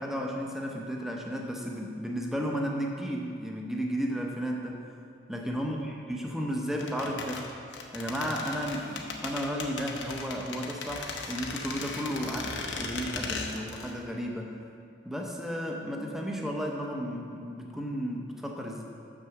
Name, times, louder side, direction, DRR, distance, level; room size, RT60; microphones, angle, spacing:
voice 1, 0.0-4.8 5.3-7.4 7.9-14.5 15.0-18.8, equal, ahead, 0 dB, 0.7 m, -33 dB
sound 1, 6.8-14.0 14.2-14.3, left 4 dB, 80° left, 0.8 m, -37 dB
6.8 x 6.4 x 5.9 m, 2.4 s
head